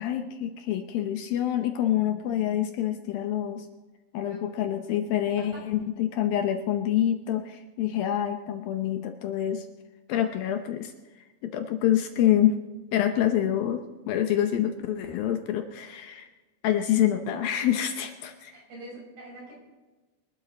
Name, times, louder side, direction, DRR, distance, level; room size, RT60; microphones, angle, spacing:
voice 1, 0.0-3.7 4.1-9.7 10.1-10.9 11.4-12.6 12.9-16.3 16.6-18.5, left 11 dB, 75° left, 6 dB, 2.4 m, -26 dB
voice 2, 18.5-19.5, right 1 dB, 70° right, -3 dB, 8.6 m, -44 dB
24.5 x 12.0 x 4.1 m, 1.2 s
omnidirectional pair, 4.7 m